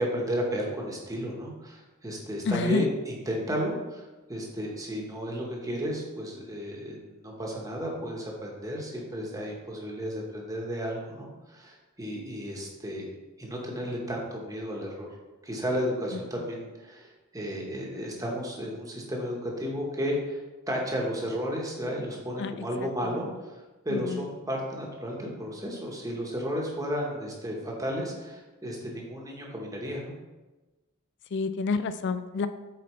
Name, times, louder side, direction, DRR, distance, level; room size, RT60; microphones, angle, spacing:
voice 1, 0.0-4.0 4.3-13.1 13.4-15.1 15.4-20.4 20.7-23.3 23.8-30.1, equal, 15° right, -1 dB, 1.1 m, -33 dB
voice 2, 2.5-2.9 22.4-22.5 22.8-23.1 23.9-24.3 31.3-32.5, left 4 dB, 55° left, 11 dB, 0.4 m, -29 dB
8.0 x 4.2 x 3.1 m, 1.2 s
head